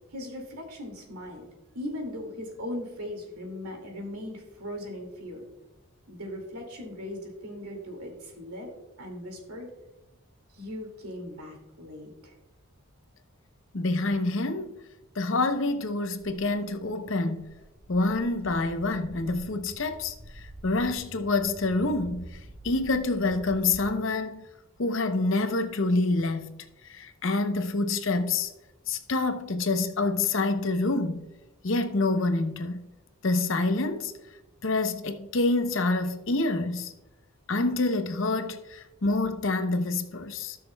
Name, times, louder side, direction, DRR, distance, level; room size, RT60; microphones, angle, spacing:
voice 1, 0.1-1.5 1.7-5.4 6.1-8.7 9.0-9.7 10.5-12.3, left 1 dB, 90° right, 2.3 m, -38 dB
voice 2, 13.7-14.8 15.2-17.5 17.9-22.4 22.6-24.4 24.8-26.5 26.8-28.5 28.9-31.3 31.6-32.8 33.2-34.1 34.6-36.9 37.5-40.6, left 2 dB, 60° left, 0.7 m, -27 dB
Walk footsteps, 16.2-23.9, right 1 dB, 25° right, 1.3 m, -47 dB
16.5 x 6.3 x 2.3 m
head